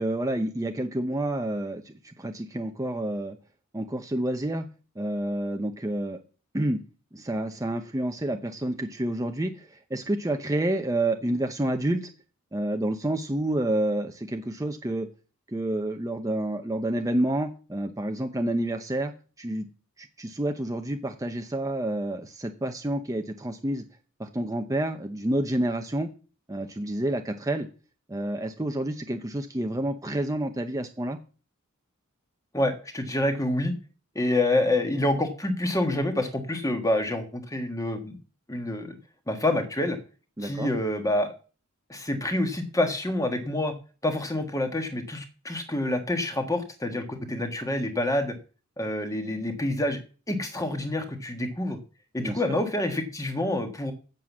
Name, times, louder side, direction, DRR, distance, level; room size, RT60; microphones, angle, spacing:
voice 1, 0.0-3.4 3.7-4.7 5.0-6.2 6.5-6.8 7.1-12.1 12.5-15.1 15.5-19.1 19.4-19.7 20.0-23.8 24.2-26.1 26.5-27.7 28.1-31.2 40.4-40.7 52.2-52.5, right 1 dB, 15° right, 5 dB, 0.8 m, -29 dB
voice 2, 32.5-33.7 34.1-38.2 38.5-39.0 39.3-40.0 40.4-41.3 41.9-43.7 44.0-48.3 48.8-50.0 50.3-51.8 52.1-53.9, left 1 dB, 15° left, 6 dB, 1.5 m, -27 dB
7.8 x 7.4 x 7.2 m, 0.36 s
head